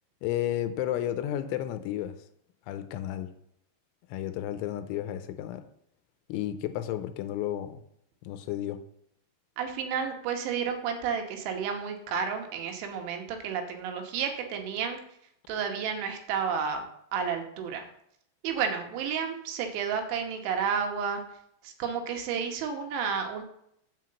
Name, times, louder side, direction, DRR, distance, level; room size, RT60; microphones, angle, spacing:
voice 1, 0.2-2.2 2.7-3.3 4.1-5.7 6.3-7.8 8.2-8.8, left 12 dB, 85° left, 2.9 m, -32 dB
voice 2, 9.6-15.0 15.5-16.8 17.1-17.9 18.4-21.2 21.6-23.4, right 6 dB, 80° right, 3.5 m, -31 dB
7.7 x 5.4 x 7.6 m
omnidirectional pair, 5.6 m